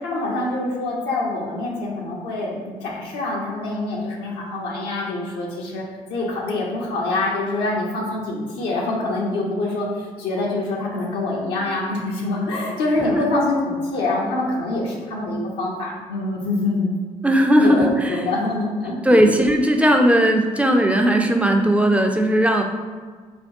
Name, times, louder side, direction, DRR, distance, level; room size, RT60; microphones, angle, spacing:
voice 1, 0.0-5.8 6.1-9.9 10.2-16.9 17.6-19.2, left 2 dB, 70° left, -3 dB, 0.6 m, -25 dB
voice 2, 17.2-18.2 19.0-22.6, equal, 5° right, 3 dB, 0.4 m, -17 dB
3.5 x 2.2 x 2.6 m, 1.5 s
hypercardioid pair, 40°, 18 cm